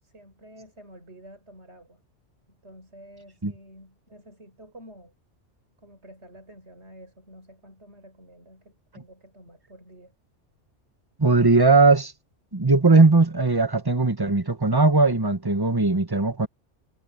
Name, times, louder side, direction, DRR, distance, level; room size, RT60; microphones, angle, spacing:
voice 1, 0.0-2.0 2.5-5.1 5.8-10.1, right 1 dB, 65° right, 6.7 m, -49 dB
voice 2, 11.2-12.1 12.5-16.5, right 3 dB, 20° right, 1.3 m, -19 dB
omnidirectional pair, 1.2 m